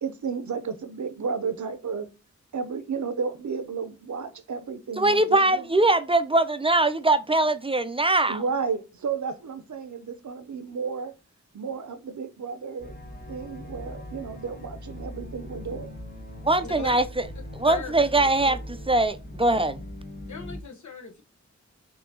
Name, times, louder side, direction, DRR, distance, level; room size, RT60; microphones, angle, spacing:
voice 1, 0.0-2.1 2.5-5.7 8.3-11.1 11.5-13.0 13.3-15.9, right 5 dB, 75° right, 0.6 m, -32 dB
voice 2, 5.0-8.4 16.4-17.0 17.6-18.6 18.9-19.8, right 2 dB, 20° right, 0.4 m, -22 dB
sound 1, 12.8-20.6, left 1 dB, 30° left, 0.8 m, -40 dB
voice 3, 16.6-16.9 17.6-18.6 20.3-21.2, left 5 dB, 80° left, 0.9 m, -39 dB
5.9 x 2.8 x 2.7 m
wide cardioid pair, 60°, 29 cm